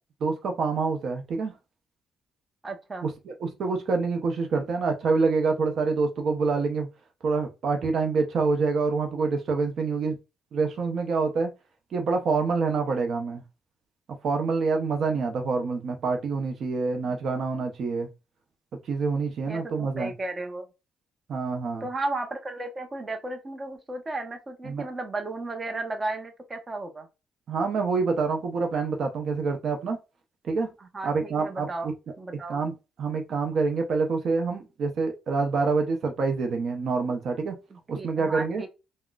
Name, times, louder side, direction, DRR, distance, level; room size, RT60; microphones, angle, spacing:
voice 1, 0.2-1.5 3.0-6.9 7.2-10.2 10.5-11.5 11.9-13.4 14.2-18.1 18.9-20.1 21.3-21.9 24.7-24.9 27.5-30.0 30.5-30.7 31.0-31.9 32.5-37.5 37.9-38.6, right 4 dB, 60° right, 0.6 m, -26 dB
voice 2, 2.6-3.1 19.5-20.7 21.8-27.1 30.8-31.9 32.2-32.6 37.7-38.7, right 2 dB, 25° right, 0.8 m, -34 dB
3.6 x 2.1 x 2.3 m
cardioid pair, 90°, 0 cm